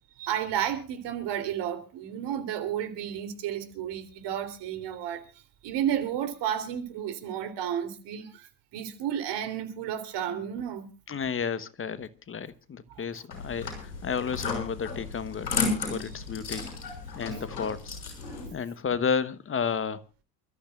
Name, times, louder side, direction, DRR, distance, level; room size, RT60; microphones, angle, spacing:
voice 1, 0.2-5.2 5.6-10.9 12.9-13.0, right 10 dB, 55° right, 3.6 m, -32 dB
voice 2, 11.1-15.5 15.9-18.0 18.5-20.0, left 6 dB, 25° left, 1.2 m, -32 dB
sound 1, 13.3-18.5, left 4 dB, 90° left, 6.6 m, -33 dB
28.5 x 13.5 x 2.5 m
hypercardioid pair, 80°, 50 cm